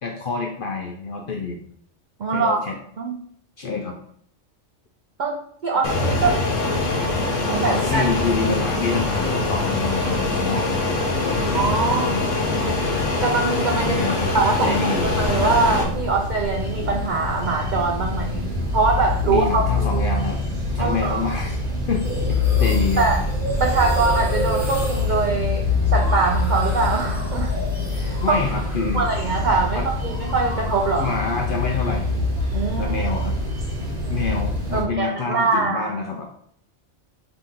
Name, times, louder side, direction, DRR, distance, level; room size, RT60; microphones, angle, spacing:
voice 1, 0.0-1.6 2.3-2.8 3.6-4.0 7.6-11.4 11.9-12.3 13.8-14.3 14.6-15.1 19.3-20.4 20.7-21.6 21.9-22.0 22.3-23.2 28.2-29.1 29.7-29.9 31.0-32.1 32.8-33.4 34.1-36.2, left 4 dB, 60° left, 1 dB, 0.6 m, -27 dB
voice 2, 2.2-2.6 3.0-3.2 5.2-6.4 7.5-8.0 11.5-12.1 13.2-20.0 20.8-21.3 23.0-23.2 23.6-27.5 27.9-28.4 28.8-31.1 32.5-32.9 34.7-35.9, right 4 dB, 70° right, 1 dB, 0.4 m, -23 dB
Fixed-wing aircraft airplane, 5.8-15.8, left 2 dB, 85° left, 1.2 m, -23 dB
sound 1, 15.0-34.8, left 3 dB, 35° right, 1.0 m, -25 dB
sound 2, 22.0-29.5 29.7-31.2, right 1 dB, 15° right, 1.0 m, -33 dB
4.0 x 2.8 x 3.7 m, 0.66 s
omnidirectional pair, 1.3 m